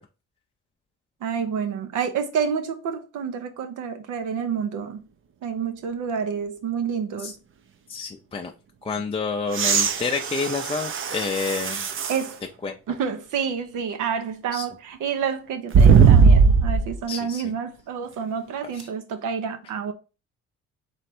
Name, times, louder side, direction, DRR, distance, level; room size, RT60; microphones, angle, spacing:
voice 1, 1.2-5.0 5.4-7.4 12.1-12.4 12.9-19.9, right 7 dB, 85° right, 0.8 m, -28 dB
voice 2, 7.9-8.5 8.8-11.9 12.6-12.8 14.5-14.7 17.1-17.4 18.7-18.9, left 4 dB, 20° left, 0.4 m, -29 dB
sound 1, 9.5-12.3 12.9-13.0 15.7-17.0 18.8-18.9, right 5 dB, 45° right, 0.5 m, -18 dB
3.3 x 3.0 x 4.3 m
cardioid pair, 90°, 30 cm